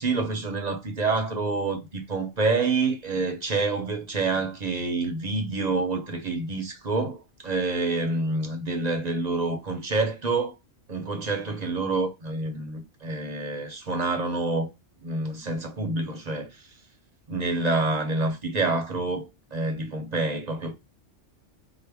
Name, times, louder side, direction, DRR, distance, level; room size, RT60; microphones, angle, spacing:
voice 1, 0.0-10.6 10.9-14.7 15.0-16.7 17.3-20.7, right 3 dB, 45° right, 0.6 m, -27 dB
4.5 x 2.1 x 3.4 m
omnidirectional pair, 1.3 m